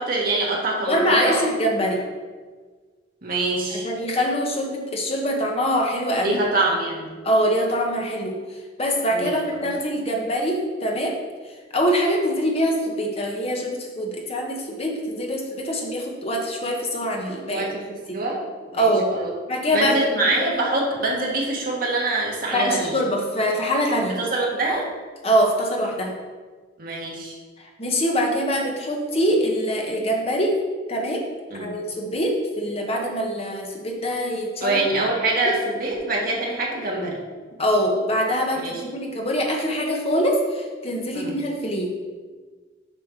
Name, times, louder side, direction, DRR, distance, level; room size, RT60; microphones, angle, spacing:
voice 1, 0.0-1.4 1.8-1.9 3.2-3.9 6.2-7.1 9.1-9.7 17.5-18.4 18.7-19.3 19.7-22.9 24.1-24.9 26.8-27.3 31.5-31.7 34.6-37.2 38.6-38.8 41.1-41.4, right 2 dB, 50° right, -2 dB, 1.5 m, -25 dB
voice 2, 0.9-2.0 3.7-6.4 7.2-11.2 11.7-17.7 18.1-18.2 18.7-19.1 19.5-20.1 20.4-20.6 22.5-24.2 25.2-26.2 27.6-30.6 30.9-31.3 31.6-34.8 37.6-41.9, equal, 35° left, 1 dB, 1.1 m, -24 dB
7.0 x 4.2 x 5.7 m, 1.5 s
head